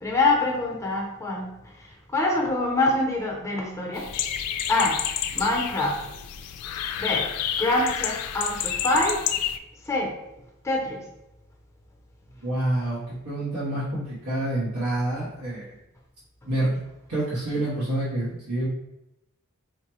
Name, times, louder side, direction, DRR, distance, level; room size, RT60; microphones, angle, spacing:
voice 1, 0.0-1.5 2.1-4.1 4.7-5.0 5.3-6.0 7.0-7.3 7.6-9.2 9.9-10.1 10.6-11.0, left 2 dB, 15° left, -1 dB, 0.7 m, -25 dB
sound 1, 3.9-9.6, left 9 dB, 85° left, 0.3 m, -29 dB
voice 2, 12.4-15.7 16.4-16.8 17.1-18.7, right 1 dB, 85° right, -9 dB, 1.1 m, -27 dB
4.7 x 2.1 x 3.0 m, 0.91 s
head